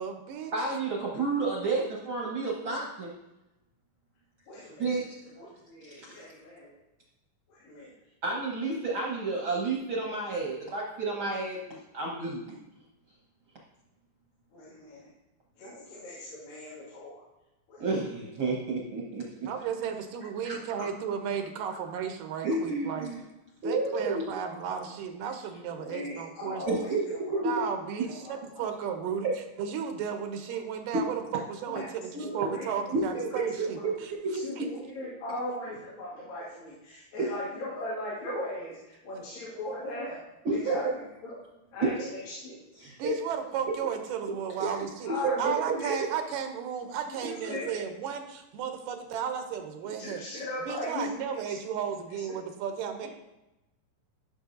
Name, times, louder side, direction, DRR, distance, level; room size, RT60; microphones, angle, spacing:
voice 1, 0.0-0.5 19.5-23.1 23.6-26.6 27.4-29.3 29.6-34.1 34.6-34.7 43.0-45.1 45.4-50.2 50.7-53.1, right 7 dB, 80° right, 5 dB, 2.4 m, -34 dB
voice 2, 0.5-3.1 4.8-5.2 5.8-6.2 8.2-12.5 17.8-19.5 20.4-20.6 22.4-23.3 23.6-24.3 26.7-27.0 27.3-27.7 28.0-28.1 30.9-31.0 32.2-32.5 32.9-33.5 33.8-34.7 37.2-37.3 40.4-40.8 41.8-41.9 42.8-43.2 44.6-44.8 45.2-45.3, right 3 dB, 55° right, -3 dB, 1.5 m, -31 dB
voice 3, 4.5-4.8 5.4-6.8 7.5-7.9 14.5-15.1 15.6-17.2 17.7-17.8 25.7-27.0 27.3-27.4 28.1-28.7 31.7-31.9 32.2-32.8 33.3-33.9 34.4-40.2 40.5-41.4 41.7-42.6 45.1-45.9 47.1-47.8 50.0-51.4 52.3-52.4 53.0-53.1, left 1 dB, 85° left, -8 dB, 3.9 m, -38 dB
13.5 x 6.4 x 2.7 m, 0.97 s
omnidirectional pair, 3.9 m